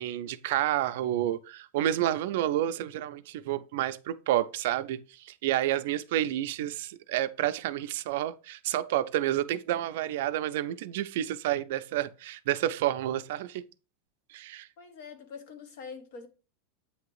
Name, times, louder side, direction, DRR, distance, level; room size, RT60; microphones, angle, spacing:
voice 1, 0.0-13.6 14.3-14.7, right 13 dB, 60° right, 0.4 m, -30 dB
voice 2, 14.8-16.3, left 5 dB, 55° left, 1.3 m, -44 dB
8.4 x 2.9 x 4.7 m
supercardioid pair, 180°, 0 cm